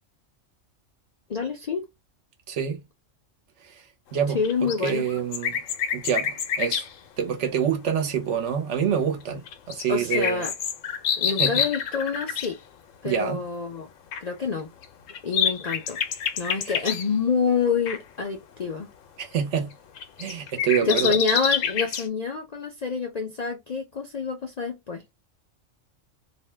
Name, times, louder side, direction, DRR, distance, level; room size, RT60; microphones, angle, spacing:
voice 1, 1.3-1.8 4.3-5.0 9.9-10.5 11.2-12.6 13.0-13.9 14.2-14.7 15.2-16.0 16.4-18.9 20.8-25.0, left 5 dB, 55° left, 0.4 m, -27 dB
voice 2, 2.5-2.8 3.6-3.8 4.1-5.6 5.9-6.9 7.2-10.4 11.4-11.6 13.0-13.4 19.2-19.7 20.2-21.2, right 8 dB, 70° right, 1.0 m, -27 dB
sound 1, 4.4-6.9 9.5-12.5 14.1-14.2 14.8-17.1 17.9-18.0 19.7-22.1, left 8 dB, 90° left, 1.0 m, -27 dB
2.5 x 2.1 x 3.2 m
omnidirectional pair, 1.3 m